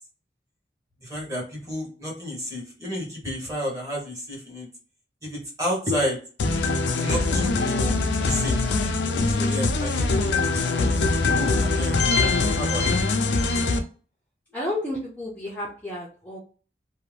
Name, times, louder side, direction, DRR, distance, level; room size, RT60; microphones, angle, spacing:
voice 1, 1.0-4.7 5.2-6.2 6.9-7.5 8.2-8.6 9.3-10.7 11.2-13.0, equal, 20° right, -3 dB, 1.0 m, -31 dB
sound 1, 6.4-13.8, left 3 dB, 80° left, 0.4 m, -23 dB
voice 2, 14.5-16.4, left 1 dB, 10° left, -4 dB, 0.5 m, -31 dB
2.6 x 2.1 x 3.2 m, 0.38 s
head